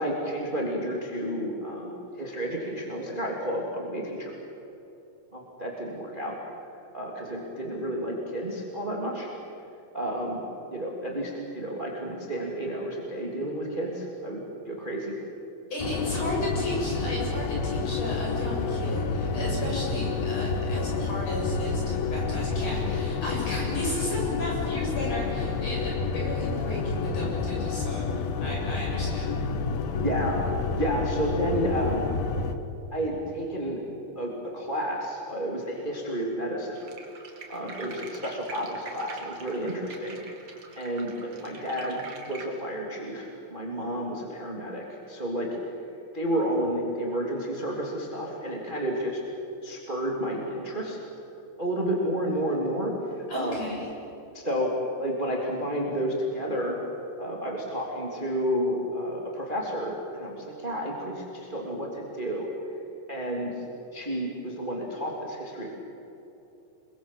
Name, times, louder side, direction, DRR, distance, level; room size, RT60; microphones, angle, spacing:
voice 1, 0.0-4.3 5.3-6.4 6.9-9.3 9.9-10.4 10.7-15.2 29.9-32.1 32.9-33.8 34.1-36.8 37.5-40.2 40.5-45.5 46.1-49.2 49.6-51.0 51.6-53.6 54.3-54.7 55.0-56.8 57.2-62.5 63.1-63.6 63.9-65.8, equal, 15° right, -1 dB, 2.9 m, -31 dB
voice 2, 15.7-29.3 53.3-53.9, left 1 dB, 45° left, -3 dB, 9.0 m, -34 dB
rodeo tonal experiment, 15.8-32.5, left 4 dB, 85° left, 3.2 m, -29 dB
sound 1, 36.8-42.4, right 4 dB, 45° right, 3.1 m, -44 dB
29.5 x 22.0 x 7.5 m, 3.0 s
omnidirectional pair, 4.2 m